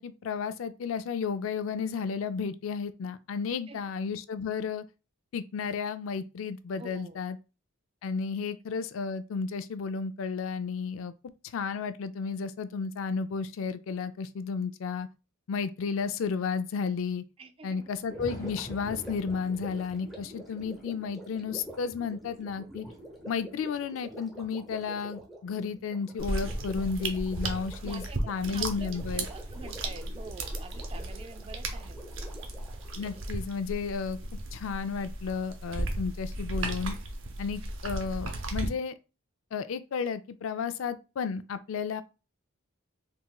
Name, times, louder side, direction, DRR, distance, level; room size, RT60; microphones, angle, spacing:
voice 1, 0.0-4.8 5.3-7.4 8.0-11.1 11.4-15.1 15.5-17.2 17.6-22.9 23.3-29.3 33.0-34.2 34.5-37.0 37.4-38.9 39.5-42.0, left 5 dB, 75° left, 0.3 m, -33 dB
voice 2, 3.5-3.9 6.8-7.2 17.4-17.9 27.8-32.3 37.6-37.7, right 4 dB, 25° right, 0.3 m, -47 dB
Thunder, 17.7-26.2 26.9-28.6 29.7-29.8 30.4-30.5 32.4-32.5 33.8-33.9 35.5-35.6, equal, 20° left, 1.2 m, -50 dB
Gurgling, 18.0-33.3, equal, ahead, 0.8 m, -47 dB
sound 1, 26.2-38.7, right 2 dB, 70° right, 0.6 m, -35 dB
3.5 x 2.9 x 2.3 m
head